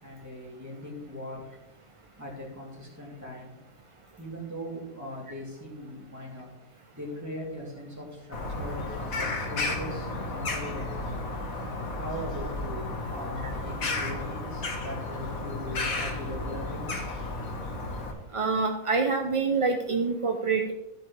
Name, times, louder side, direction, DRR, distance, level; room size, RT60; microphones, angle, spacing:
voice 1, 0.0-1.4 2.2-3.6 4.2-6.5 6.9-11.2 11.9-16.8, left 1 dB, 10° right, -4 dB, 3.0 m, -39 dB
Bird vocalization bird call bird song, 8.3-18.1, left 2 dB, 70° left, 1.9 m, -33 dB
voice 2, 18.3-20.7, right 4 dB, 35° right, 3 dB, 0.5 m, -26 dB
13.5 x 8.3 x 3.3 m, 0.88 s
omnidirectional pair, 1.5 m